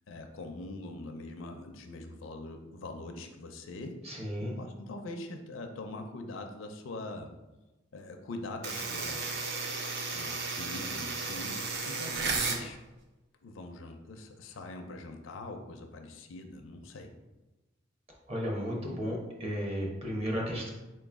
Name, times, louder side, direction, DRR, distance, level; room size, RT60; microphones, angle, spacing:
voice 1, 0.0-7.3 7.9-9.2 10.1-11.6 11.9-12.8 13.4-17.1, left 2 dB, 85° left, 4 dB, 0.5 m, -43 dB
voice 2, 4.0-4.5 18.3-20.7, equal, 30° right, -1 dB, 1.0 m, -34 dB
sound 1, 8.6-12.6, right 4 dB, 60° right, 0.6 m, -34 dB
4.4 x 3.0 x 3.6 m, 1.1 s
head